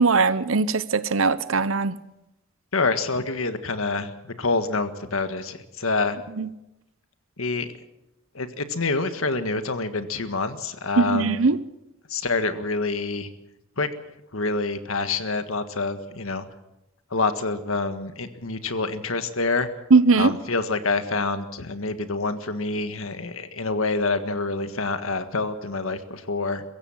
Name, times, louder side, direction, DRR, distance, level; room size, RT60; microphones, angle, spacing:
voice 1, 0.0-2.0 6.4-6.5 11.0-11.6 19.9-20.3, right 4 dB, 75° right, 0.9 m, -19 dB
voice 2, 2.7-6.2 7.4-7.7 8.3-11.4 12.1-13.3 13.8-13.9 14.3-16.5 17.1-19.7 20.2-26.6, left 3 dB, 80° left, 1.7 m, -27 dB
23.5 x 15.5 x 7.2 m
head